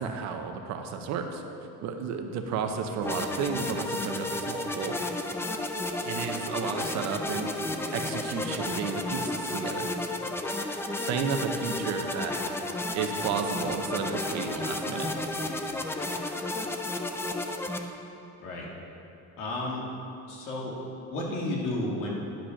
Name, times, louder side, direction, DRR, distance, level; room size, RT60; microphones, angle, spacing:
voice 1, 0.0-1.4 1.8-5.0 6.0-9.9 10.9-12.3 12.9-15.1, right 6 dB, 60° right, 5 dB, 0.8 m, -32 dB
sound 1, 3.0-17.8, left 2 dB, 10° left, 0.3 m, -32 dB
voice 2, 19.4-19.8 20.3-20.7 21.1-22.1, left 1 dB, 85° left, -2 dB, 2.1 m, -32 dB
10.5 x 5.1 x 5.8 m, 2.9 s
cardioid pair, 155°, 31 cm